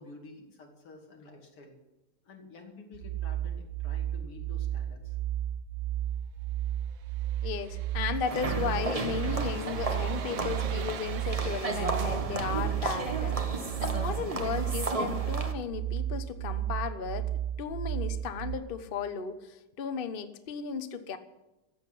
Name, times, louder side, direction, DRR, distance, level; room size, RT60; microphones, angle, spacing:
voice 1, 0.0-1.8 2.2-5.2, left 3 dB, 90° left, 2 dB, 3.5 m, -50 dB
sound 1, 2.9-18.6, right 11 dB, 55° right, 0.9 m, -33 dB
sound 2, 6.9-11.7 11.9-16.8 17.2-17.3, right 10 dB, 75° right, 1.5 m, -45 dB
voice 2, 7.4-13.4 13.8-17.3 17.6-21.2, left 6 dB, 40° left, 9 dB, 0.8 m, -35 dB
sound 3, 8.3-15.5, right 3 dB, 30° right, 0.7 m, -34 dB
14.5 x 8.2 x 10.0 m, 0.98 s
omnidirectional pair, 2.4 m